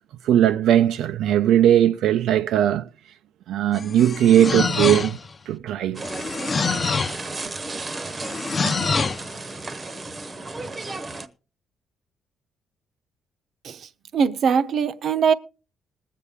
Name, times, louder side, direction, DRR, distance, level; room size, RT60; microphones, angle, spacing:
voice 1, 0.2-2.9 3.5-5.2 5.5-6.0, right 11 dB, 80° right, 0.5 m, -19 dB
sound 1, 3.7-5.3 6.0-7.3 8.2-9.3, left 4 dB, 25° left, 0.7 m, -25 dB
sound 2, 5.9-11.3, right 2 dB, 20° right, 0.8 m, -34 dB
voice 2, 13.6-15.3, right 6 dB, 50° right, 0.8 m, -22 dB
20.5 x 8.3 x 3.6 m
cardioid pair, 155°, 0 cm